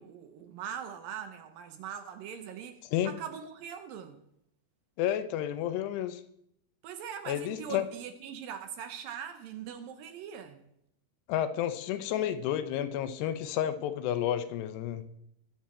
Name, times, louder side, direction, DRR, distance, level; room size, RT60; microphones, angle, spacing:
voice 1, 0.0-4.2 6.8-10.6, right 8 dB, 75° right, 8 dB, 2.3 m, -41 dB
voice 2, 5.0-6.2 7.3-7.8 11.3-15.0, left 11 dB, 85° left, 11 dB, 3.0 m, -31 dB
21.0 x 7.5 x 4.3 m, 0.76 s
omnidirectional pair, 4.7 m